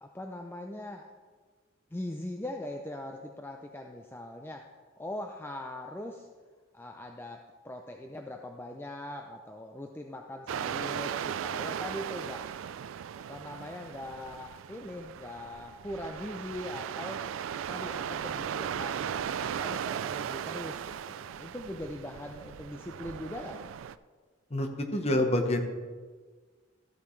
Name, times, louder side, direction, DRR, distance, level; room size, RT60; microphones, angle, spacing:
voice 1, 0.0-1.1 1.9-6.3 6.7-12.5 13.1-17.2 17.7-23.6, left 1 dB, 10° left, 3 dB, 0.4 m, -41 dB
sound 1, 10.5-24.0, right 8 dB, 80° right, 0.3 m, -37 dB
voice 2, 24.5-25.6, left 1 dB, 35° left, 5 dB, 1.0 m, -27 dB
13.5 x 8.7 x 3.2 m, 1.5 s
head